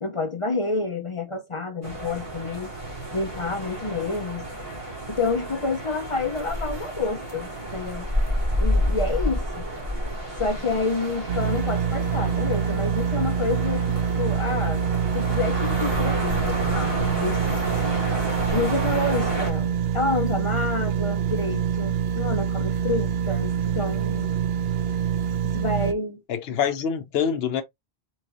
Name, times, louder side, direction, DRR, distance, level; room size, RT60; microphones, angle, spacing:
voice 1, 0.0-2.7 3.1-4.4 5.1-8.1 8.6-9.6 10.4-14.8 15.1-17.9 18.5-24.3 25.4-26.2 26.5-26.6, left 3 dB, 40° left, 0.5 m, -29 dB
sound 1, 1.8-19.5, equal, 30° right, 2.1 m, -30 dB
sound 2, 11.3-25.9, right 7 dB, 70° right, 0.8 m, -25 dB
voice 2, 26.3-27.6, left 7 dB, 75° left, 0.8 m, -25 dB
4.5 x 3.1 x 2.5 m
omnidirectional pair, 1.1 m